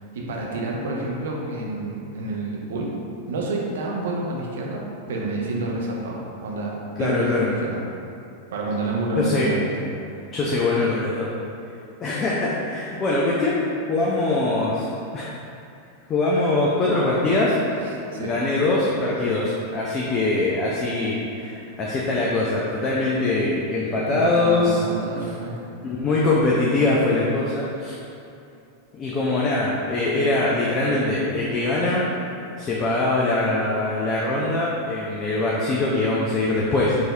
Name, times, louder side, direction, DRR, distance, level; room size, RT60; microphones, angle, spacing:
voice 1, 0.0-3.0 3.3-7.8 8.5-9.7 17.8-18.3 23.9-25.6, right 2 dB, 60° right, -2 dB, 0.6 m, -28 dB
voice 2, 7.0-7.5 9.2-9.5 10.3-11.3 12.0-13.6 13.9-15.3 16.1-17.6 18.2-24.8 25.8-28.0 28.9-32.0 32.6-37.0, left 2 dB, 25° left, -5 dB, 0.4 m, -22 dB
4.6 x 2.7 x 2.2 m, 2.6 s
figure-of-eight pair, 90°, 0 cm